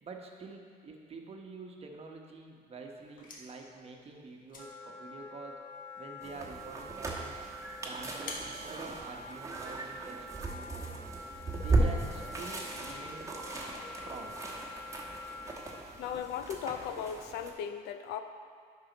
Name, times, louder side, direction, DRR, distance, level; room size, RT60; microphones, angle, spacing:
voice 1, 0.0-5.6 6.0-7.4 7.8-11.0 11.6-13.3 13.6-13.7 14.0-14.4, right 3 dB, 35° right, 2 dB, 1.0 m, -47 dB
sound 1, 3.0-9.7, left 2 dB, 55° left, 1.3 m, -51 dB
Wind instrument woodwind instrument, 4.6-15.8, equal, 15° left, 1.0 m, -47 dB
sound 2, 6.2-17.5, right 2 dB, 20° right, 1.2 m, -36 dB
voice 2, 16.0-18.2, left 8 dB, 80° left, 8 dB, 0.5 m, -37 dB
10.0 x 5.6 x 4.0 m, 2.1 s
cardioid pair, 110°, 17 cm